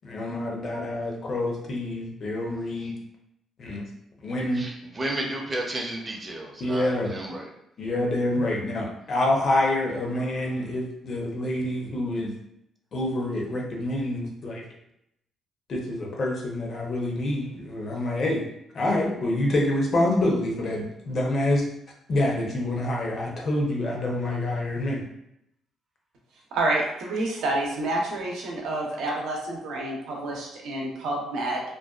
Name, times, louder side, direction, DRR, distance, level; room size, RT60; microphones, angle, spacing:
voice 1, 0.0-2.9 3.6-3.8 4.2-4.7 6.6-7.2 7.8-12.3 12.9-14.6 15.7-18.5 18.7-21.6 22.1-25.0, left 1 dB, 50° left, -1 dB, 0.7 m, -27 dB
voice 2, 4.5-7.5, right 1 dB, 30° right, 0 dB, 0.6 m, -32 dB
voice 3, 26.5-31.6, right 2 dB, 80° right, -1 dB, 0.6 m, -28 dB
2.5 x 2.2 x 2.3 m, 0.79 s
cardioid pair, 85°, 0 cm